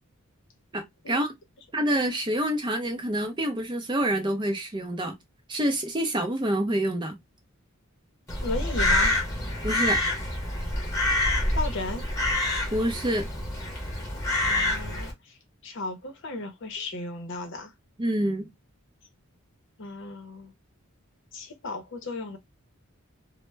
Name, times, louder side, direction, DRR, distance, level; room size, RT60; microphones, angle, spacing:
voice 1, 0.7-1.3 1.7-5.2 5.5-7.2 9.6-10.0 12.7-13.3 18.0-18.5, right 1 dB, 20° right, 0.5 m, -27 dB
Crow, 8.3-15.1, left 1 dB, 15° left, 1.0 m, -27 dB
voice 2, 8.4-9.1 11.5-12.0 14.4-15.4 15.6-17.7 19.8-20.5 21.3-22.4, left 3 dB, 55° left, 0.6 m, -35 dB
2.1 x 2.0 x 3.1 m
head